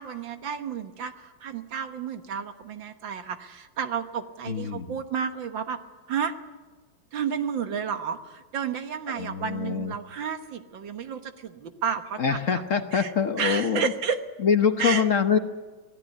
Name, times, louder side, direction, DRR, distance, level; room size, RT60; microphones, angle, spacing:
voice 1, 0.0-5.8 6.1-6.3 7.1-12.2 12.9-13.1 13.4-14.2 14.8-15.0, right 7 dB, 75° right, 8 dB, 2.0 m, -31 dB
voice 2, 4.5-5.0 9.1-9.9 12.2-13.9 14.4-15.4, left 6 dB, 50° left, 7 dB, 1.2 m, -24 dB
25.5 x 17.0 x 9.8 m, 1.3 s
omnidirectional pair, 2.1 m